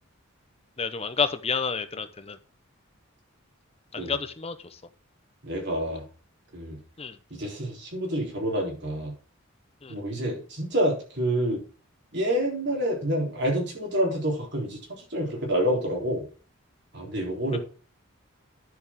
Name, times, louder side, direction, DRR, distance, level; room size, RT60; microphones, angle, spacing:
voice 1, 0.8-2.4 3.9-4.6 7.0-7.2 9.8-10.0, left 5 dB, 30° left, 10 dB, 0.8 m, -29 dB
voice 2, 5.4-6.0 6.5-6.8 7.3-9.1 9.9-11.6 12.1-16.2 16.9-17.6, equal, 55° right, 0 dB, 3.7 m, -28 dB
10.5 x 6.9 x 3.6 m, 0.38 s
head